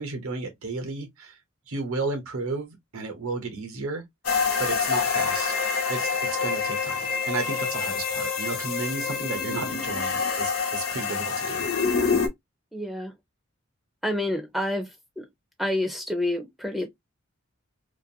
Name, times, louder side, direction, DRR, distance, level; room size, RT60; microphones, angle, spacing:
voice 1, 0.0-1.4 1.7-4.0 4.6-5.5 5.9-6.1 6.4-11.7, right 3 dB, 85° right, 0.9 m, -33 dB
sound 1, 4.2-12.3, left 5 dB, 90° left, 0.8 m, -26 dB
voice 2, 12.7-13.1 14.0-14.9 15.2-15.3 15.6-16.9, left 1 dB, ahead, 0.4 m, -28 dB
2.5 x 2.4 x 2.6 m
head